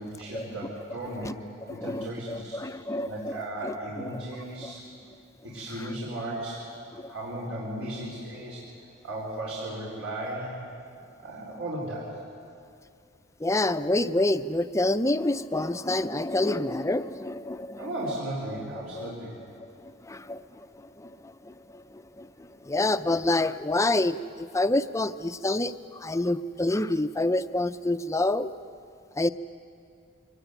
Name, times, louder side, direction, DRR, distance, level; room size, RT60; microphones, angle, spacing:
voice 1, 0.0-1.3 1.7-2.6 3.1-4.8 5.4-6.6 7.1-8.7 9.0-10.6 11.2-12.2 17.8-19.3, right 1 dB, 75° right, -5 dB, 4.6 m, -35 dB
voice 2, 1.7-3.3 3.6-3.7 4.6-4.7 5.8-5.9 7.0-7.1 13.4-17.9 18.9-19.1 19.6-28.5 29.2-29.3, left 2 dB, 15° left, 11 dB, 0.5 m, -28 dB
23.5 x 19.0 x 9.3 m, 2.4 s
head